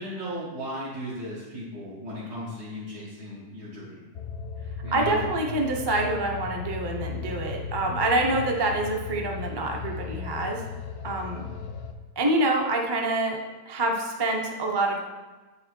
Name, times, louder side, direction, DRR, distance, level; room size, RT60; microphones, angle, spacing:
voice 1, 0.0-4.0 4.8-5.3, equal, 70° right, -9 dB, 2.1 m, -36 dB
sound 1, 4.1-11.9, left 6 dB, 65° left, 0.6 m, -36 dB
voice 2, 4.9-10.6 11.0-11.5 12.2-15.0, right 2 dB, 30° right, 1 dB, 0.5 m, -26 dB
8.2 x 5.5 x 4.4 m, 1.2 s
omnidirectional pair, 1.8 m